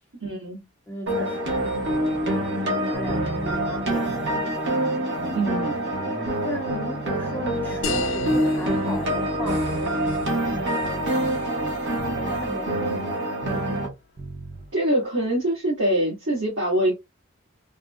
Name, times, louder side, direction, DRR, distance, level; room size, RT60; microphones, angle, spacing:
voice 1, 0.2-0.6 5.3-5.8 14.7-16.9, right 1 dB, 80° right, 1.6 m, -24 dB
voice 2, 0.9-4.4 6.4-9.7 10.4-11.3 12.0-13.3, left 1 dB, 10° left, 0.6 m, -36 dB
sound 1, 1.1-13.9, right 1 dB, 60° right, 1.1 m, -26 dB
sound 2, 2.9-14.7, right 3 dB, 40° right, 0.4 m, -39 dB
sound 3, 7.8-12.9, left 6 dB, 70° left, 0.4 m, -37 dB
3.6 x 2.0 x 2.3 m
head